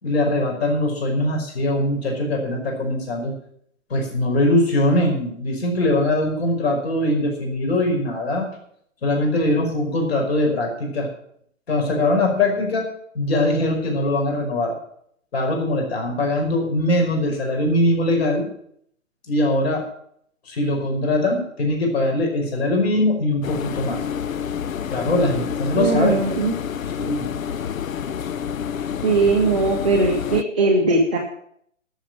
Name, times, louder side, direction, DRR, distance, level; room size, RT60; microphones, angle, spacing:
voice 1, 0.0-3.3 3.9-8.5 9.0-11.1 11.7-12.9 13.1-14.7 15.3-18.5 19.3-19.8 20.5-24.0 24.9-26.2 26.9-27.3, left 1 dB, 50° left, 2 dB, 5.4 m, -21 dB
sound 1, 23.4-30.4, left 8 dB, 85° left, 0.8 m, -28 dB
voice 2, 25.7-26.6 29.0-31.2, right 3 dB, 5° right, -8 dB, 0.5 m, -19 dB
12.0 x 7.3 x 9.1 m, 0.68 s
hypercardioid pair, 165°, 39 cm